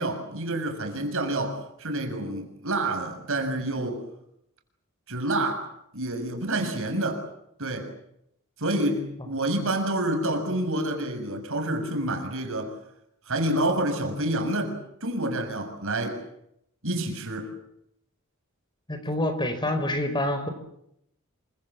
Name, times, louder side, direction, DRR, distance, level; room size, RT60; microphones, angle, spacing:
voice 1, 0.0-4.0 5.1-5.7 5.9-7.2 7.6-7.9 8.6-12.7 13.3-14.7 15.0-16.2 16.8-17.5, right 1 dB, 65° right, 6 dB, 7.0 m, -28 dB
voice 2, 18.9-20.5, left 1 dB, 20° left, 8 dB, 4.7 m, -27 dB
28.5 x 25.5 x 7.5 m, 0.76 s
head